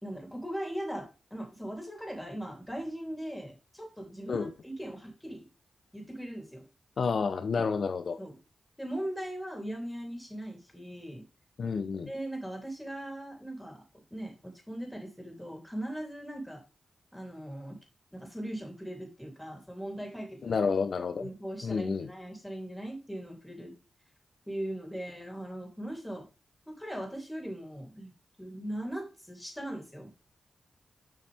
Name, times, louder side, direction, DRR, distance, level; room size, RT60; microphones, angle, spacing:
voice 1, 0.0-5.4 5.9-6.6 8.2-8.3 8.8-11.2 12.1-13.8 14.1-16.6 17.1-17.8 18.1-20.6 21.2-23.7 24.5-26.3 26.7-28.1 28.4-30.1, right 1 dB, 5° left, 3.2 m, -39 dB
voice 2, 7.0-8.2 11.6-12.1 20.4-21.3 21.6-22.1, left 5 dB, 65° left, 0.6 m, -30 dB
7.1 x 5.5 x 3.5 m
cardioid pair, 60°, 0 cm